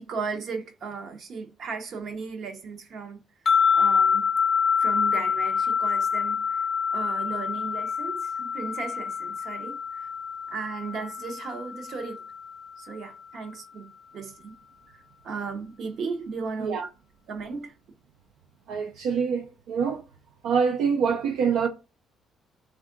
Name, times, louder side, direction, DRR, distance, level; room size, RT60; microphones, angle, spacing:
voice 1, 0.0-3.2 3.7-4.3 4.8-10.1 10.5-12.2 12.8-14.5 14.9-16.8 17.3-17.7, right 5 dB, 60° right, 0.7 m, -36 dB
sound 1, 3.5-12.7, left 6 dB, 40° left, 0.5 m, -26 dB
voice 2, 18.7-20.0 20.4-21.7, right 6 dB, 90° right, 0.3 m, -25 dB
3.5 x 2.3 x 3.7 m
cardioid pair, 95°, 0 cm